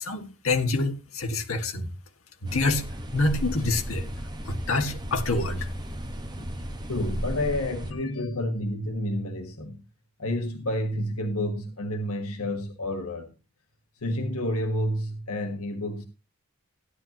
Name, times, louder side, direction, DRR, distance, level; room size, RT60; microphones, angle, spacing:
voice 1, 0.0-1.9 2.4-2.8 3.1-4.1 4.4-5.7, left 2 dB, 70° left, 1.9 m, -26 dB
sound 1, 2.5-7.9, equal, 20° right, 1.3 m, -35 dB
voice 2, 6.9-9.8 10.2-13.3 14.0-16.1, left 1 dB, 85° left, 1.5 m, -29 dB
16.0 x 10.5 x 3.0 m
head